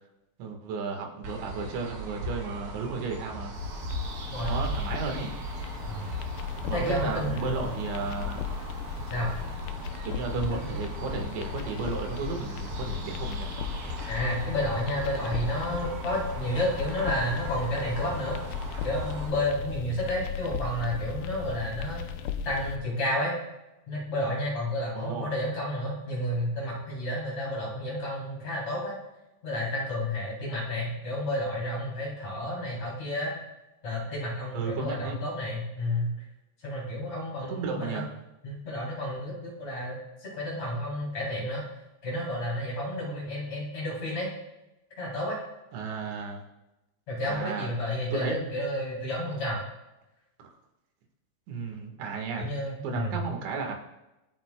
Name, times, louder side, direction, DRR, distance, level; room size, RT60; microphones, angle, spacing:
voice 1, 0.4-3.5 4.5-5.4 6.6-8.5 10.0-13.5 24.9-25.3 34.5-35.2 37.5-38.1 45.7-46.4 47.2-47.7 48.1-48.5 50.4-50.5 51.5-52.5 52.8-53.7, right 5 dB, 85° right, 2 dB, 4.0 m, -34 dB
sound 1, 1.2-19.3, right 1 dB, 60° right, 3.9 m, -38 dB
sound 2, 3.5-22.8, left 7 dB, 85° left, 2.1 m, -37 dB
voice 2, 6.7-7.7 9.1-9.3 10.4-10.5 14.1-18.4 18.8-22.0 22.4-23.4 23.9-28.9 29.4-33.3 33.8-36.1 36.6-38.0 38.4-41.6 42.0-44.3 45.0-45.3 47.1-49.6 52.4-53.2, left 1 dB, 40° left, -6 dB, 4.3 m, -31 dB
25.5 x 9.1 x 2.3 m, 0.98 s
omnidirectional pair, 5.1 m